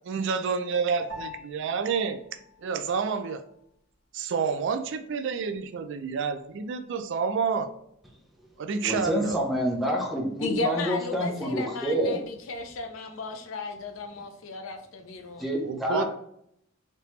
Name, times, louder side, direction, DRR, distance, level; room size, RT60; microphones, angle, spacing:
voice 1, 0.1-2.2 2.6-3.4 4.1-7.7 8.6-9.4 15.6-16.0, right 5 dB, 65° right, 8 dB, 0.4 m, -29 dB
Piano, 1.1-10.7, left 2 dB, 85° right, 0.9 m, -51 dB
voice 2, 8.8-12.2 15.4-16.0, equal, ahead, -2 dB, 0.7 m, -27 dB
voice 3, 10.4-15.5, left 3 dB, 75° left, 5 dB, 0.5 m, -34 dB
3.3 x 2.8 x 3.1 m, 0.71 s
head